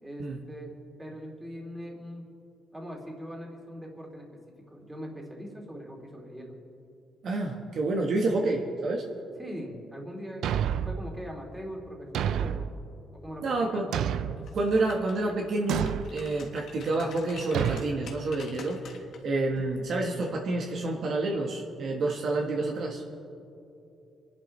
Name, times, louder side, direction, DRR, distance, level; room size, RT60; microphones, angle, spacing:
voice 1, 0.0-2.2 2.7-4.3 4.7-6.5 9.4-12.7 13.2-13.4 13.7-14.0, equal, 10° right, -1 dB, 2.8 m, -41 dB
voice 2, 7.2-9.0 13.4-13.9 14.5-18.8 19.2-23.0, right 2 dB, 60° right, 0 dB, 1.4 m, -28 dB
Thump thud, 10.4-11.0 12.1-12.7 13.9-14.5 15.7-16.1 17.5-17.9, right 9 dB, 75° right, 0.4 m, -28 dB
sound 1, 14.4-15.3 15.7-19.2 19.6-19.8, left 5 dB, 70° left, 1.5 m, -48 dB
27.0 x 11.0 x 3.3 m, 2.7 s
cardioid pair, 90°, 0 cm